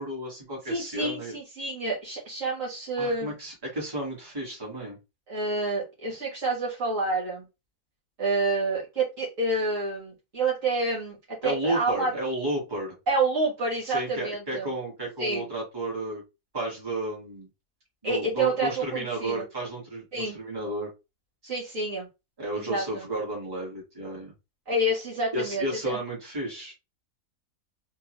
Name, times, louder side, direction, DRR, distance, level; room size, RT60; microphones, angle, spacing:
voice 1, 0.0-1.3 3.0-5.0 11.4-12.9 13.8-16.2 16.5-17.5 18.0-20.9 22.4-24.3 25.3-26.7, right 1 dB, 15° right, -4 dB, 1.7 m, -32 dB
voice 2, 0.7-3.3 5.3-7.5 8.2-12.1 13.1-14.7 15.2-15.5 18.0-19.5 20.1-20.4 21.4-22.1 22.6-23.1 24.7-26.0, right 2 dB, 60° right, -4 dB, 1.9 m, -28 dB
3.6 x 2.6 x 3.0 m, 0.26 s
omnidirectional pair, 1.6 m